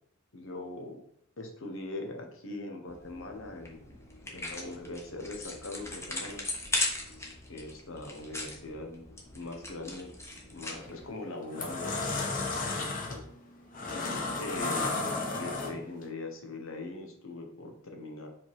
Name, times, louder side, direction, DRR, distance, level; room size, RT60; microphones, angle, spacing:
voice 1, 0.3-1.0 1.4-3.8 4.2-6.4 7.4-9.0 9.3-10.1 10.5-12.3 13.1-13.2 14.4-15.1 15.3-18.3, left 2 dB, 80° left, 3 dB, 1.2 m, -41 dB
sound 1, 2.9-11.1, left 2 dB, 15° left, 1.1 m, -38 dB
sound 2, 10.6-10.9 11.3-16.0, left 3 dB, 40° left, 1.0 m, -33 dB
5.1 x 3.8 x 4.8 m, 0.70 s
head